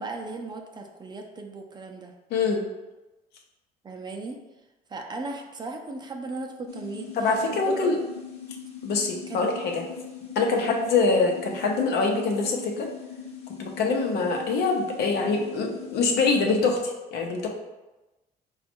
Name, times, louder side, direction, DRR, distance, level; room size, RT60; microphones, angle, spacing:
voice 1, 0.0-2.1 3.8-4.4 4.9-7.1 7.5-8.0 9.3-9.8 10.6-10.7, right 3 dB, 25° right, 2 dB, 0.5 m, -37 dB
sound 1, 6.7-16.4, left 7 dB, 40° left, 0.9 m, -41 dB
voice 2, 7.1-8.0 8.8-9.8 10.3-12.9 13.6-17.5, left 4 dB, 75° left, 1 dB, 0.8 m, -24 dB
4.2 x 2.4 x 4.3 m, 1.1 s
cardioid pair, 110°, 17 cm